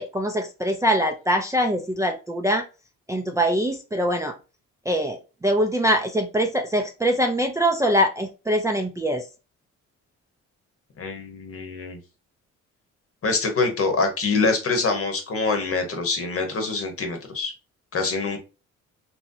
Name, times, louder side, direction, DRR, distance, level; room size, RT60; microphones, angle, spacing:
voice 1, 0.0-2.6 3.1-4.3 4.9-9.2, equal, 10° right, 2 dB, 0.4 m, -23 dB
voice 2, 11.0-12.0 13.2-17.5 17.9-18.4, left 3 dB, 50° left, 5 dB, 1.0 m, -25 dB
2.9 x 2.7 x 2.6 m, 0.31 s
cardioid pair, 90°, 30 cm